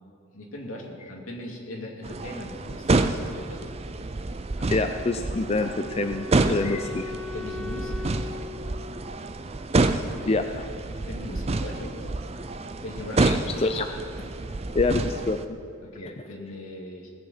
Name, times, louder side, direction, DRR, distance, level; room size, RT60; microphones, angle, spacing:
voice 1, 0.3-3.7 4.6-4.9 7.3-8.2 11.0-12.6 12.8-13.4 15.8-17.1, left 1 dB, 75° left, -1 dB, 2.5 m, -40 dB
sound 1, 2.0-15.5, right 2 dB, 30° right, 0.5 m, -28 dB
voice 2, 4.7-7.1 10.2-10.7 13.2-13.9 14.2-14.3 14.7-15.6 16.0-16.1, left 3 dB, 30° left, 7 dB, 0.4 m, -26 dB
Wind instrument woodwind instrument, 4.8-9.9, left 4 dB, ahead, 1.3 m, -40 dB
19.5 x 7.9 x 5.7 m, 2.4 s
head